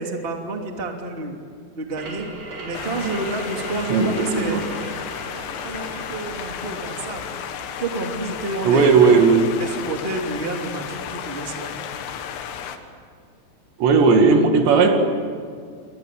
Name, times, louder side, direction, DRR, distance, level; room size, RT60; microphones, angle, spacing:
voice 1, 0.0-1.4 1.8-2.3 2.6-4.7 5.6-7.3 7.8-8.9 9.6-11.8, right 2 dB, 15° right, 2 dB, 2.0 m, -29 dB
sound 1, 1.9-11.3, right 2 dB, 50° right, 4.7 m, -39 dB
sound 2, 2.7-12.8, left 8 dB, 85° left, 4.0 m, -33 dB
voice 2, 3.9-4.6 8.6-9.5 13.8-15.0, right 4 dB, 75° right, 4 dB, 4.4 m, -16 dB
28.5 x 24.0 x 8.5 m, 2.1 s
omnidirectional pair, 5.2 m